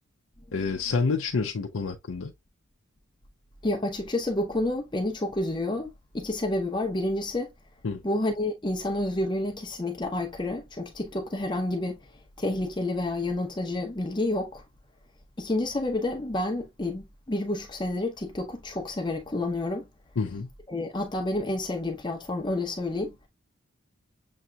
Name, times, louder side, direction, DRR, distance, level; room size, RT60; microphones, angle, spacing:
voice 1, 0.5-2.3 7.8-8.0 20.2-20.5, left 4 dB, 80° left, 0.5 m, -28 dB
voice 2, 3.6-7.5 8.0-12.0 12.4-14.6 15.4-19.9 20.7-23.1, left 1 dB, 20° left, 0.7 m, -29 dB
6.9 x 2.8 x 2.2 m
head